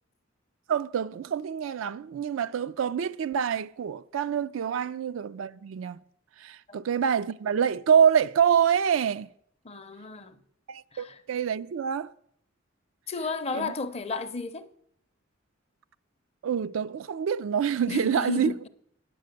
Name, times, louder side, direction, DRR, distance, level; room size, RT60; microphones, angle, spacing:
voice 1, 0.7-6.0 6.4-9.3 10.7-12.1 13.5-13.7 16.4-18.5, right 8 dB, 75° right, 0.3 m, -26 dB
voice 2, 9.6-10.4 10.9-11.2 13.1-14.7 17.9-18.7, left 3 dB, 30° left, 0.6 m, -33 dB
9.3 x 7.5 x 6.5 m
head